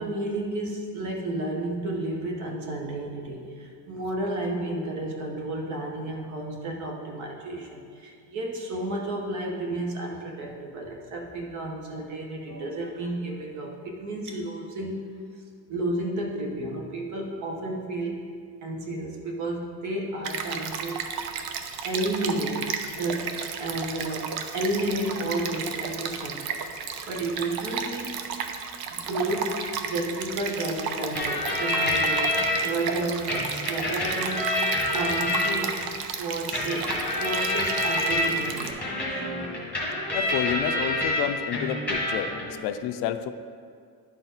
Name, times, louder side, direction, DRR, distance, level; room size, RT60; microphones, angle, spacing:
voice 1, 0.0-15.0 15.7-18.2 18.6-21.0 21.8-26.6 27.0-28.2 28.9-32.3 32.6-34.6 34.9-35.8 36.2-39.0, right 1 dB, 50° right, 1 dB, 1.2 m, -32 dB
Stream, 20.2-38.7, right 6 dB, 70° right, 0.7 m, -34 dB
sound 1, 31.1-32.6 33.3-35.9 36.5-41.2 41.5-42.4, left 1 dB, 5° left, 1.5 m, -27 dB
voice 2, 40.1-43.3, left 10 dB, 90° left, 10 dB, 0.5 m, -30 dB
11.0 x 4.3 x 4.0 m, 2.1 s
cardioid pair, 180°, 38 cm